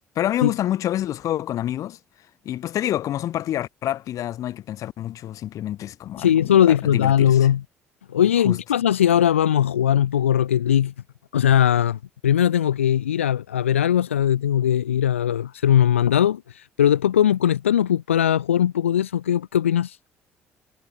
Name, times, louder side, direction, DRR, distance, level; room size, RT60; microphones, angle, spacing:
voice 1, 0.0-2.0 2.5-7.5 8.5-8.6, left 12 dB, 55° left, 3.3 m, -28 dB
voice 2, 6.2-7.6 8.1-10.9 11.3-20.0, left 10 dB, 80° left, 0.8 m, -19 dB
figure-of-eight pair, 50°, 7 cm